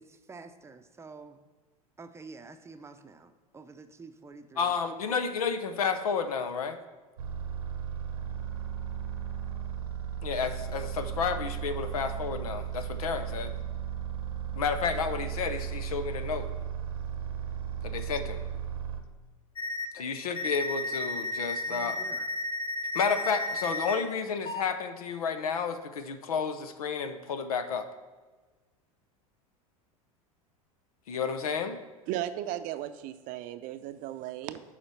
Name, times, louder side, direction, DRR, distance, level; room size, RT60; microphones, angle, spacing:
voice 1, 0.0-1.4 2.0-4.7 20.0-20.1 21.7-22.2, right 4 dB, 15° right, 8 dB, 0.7 m, -48 dB
voice 2, 4.6-6.8 10.2-13.5 14.5-16.5 17.8-18.4 19.9-22.2 22.9-27.9 31.1-31.8, left 6 dB, 80° left, 9 dB, 0.8 m, -31 dB
sound 1, 7.2-19.0, right 8 dB, 85° right, 0.9 m, -35 dB
sound 2, 19.6-19.9 20.4-24.0 24.5-24.6, left 2 dB, 25° left, 1.0 m, -33 dB
voice 3, 32.1-34.6, right 12 dB, 50° right, 11 dB, 0.6 m, -36 dB
7.1 x 5.0 x 6.7 m, 1.3 s
hypercardioid pair, 90°, 18 cm